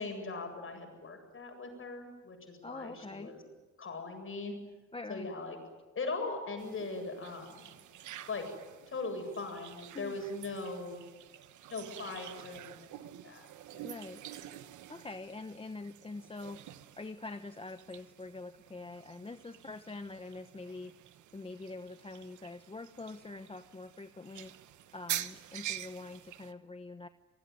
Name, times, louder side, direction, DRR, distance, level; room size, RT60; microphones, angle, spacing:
voice 1, 0.0-3.4 3.8-4.6 5.1-5.6 5.9-7.7 8.3-8.5 8.9-11.0 11.7-13.9, left 3 dB, 45° left, 5 dB, 7.9 m, -40 dB
voice 2, 2.6-3.3 4.9-5.3 9.9-10.2 13.8-14.2 14.9-16.6 17.0-20.9 21.3-24.5 24.9-27.1, left 3 dB, 20° left, 9 dB, 1.0 m, -44 dB
sound 1, 6.6-26.5, right 12 dB, 75° right, 1.2 m, -47 dB
26.5 x 20.0 x 9.6 m, 1.2 s
cardioid pair, 90°, 30 cm